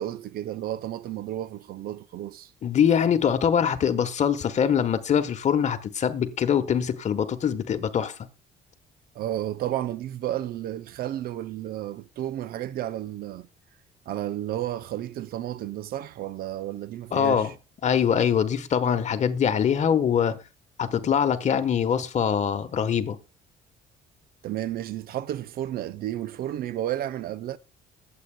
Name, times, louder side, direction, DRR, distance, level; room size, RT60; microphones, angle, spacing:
voice 1, 0.0-2.5 9.2-13.5 14.1-17.5 24.4-27.6, right 12 dB, 60° right, 0.5 m, -32 dB
voice 2, 2.6-8.3 17.1-17.5 17.8-20.4 20.8-23.2, left 8 dB, 45° left, 1.1 m, -23 dB
21.0 x 7.9 x 2.2 m
cardioid pair, 110°, 17 cm